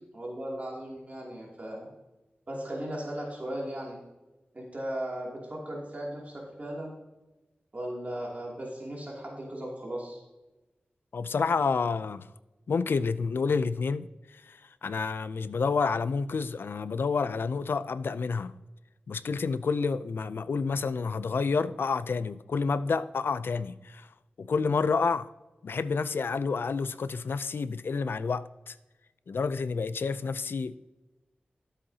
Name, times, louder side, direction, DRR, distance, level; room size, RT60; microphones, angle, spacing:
voice 1, 0.1-1.9 2.5-4.0 4.5-6.9 7.7-10.2, right 1 dB, 45° right, 2.6 m, -37 dB
voice 2, 11.1-12.3 12.7-18.6 19.1-25.3 25.6-28.8 29.3-30.8, left 5 dB, 80° left, 0.4 m, -29 dB
13.0 x 7.5 x 2.8 m
wide cardioid pair, 75°, 4 cm